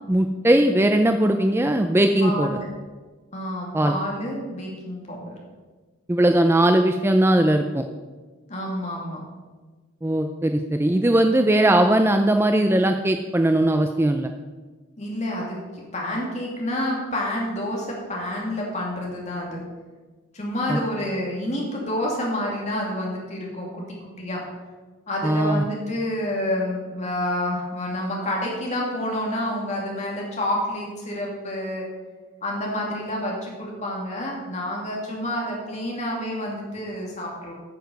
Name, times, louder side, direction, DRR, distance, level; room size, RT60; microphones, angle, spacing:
voice 1, 0.1-2.5 3.7-3.9 6.1-7.8 10.0-14.3 20.7-20.8 25.2-25.6, right 1 dB, 10° right, 6 dB, 0.4 m, -19 dB
voice 2, 2.2-2.7 3.3-5.4 8.5-9.2 15.0-19.6 20.3-24.4 25.1-31.9 32.4-37.5, left 1 dB, 35° left, -2 dB, 2.6 m, -29 dB
9.4 x 6.9 x 6.4 m, 1.3 s
head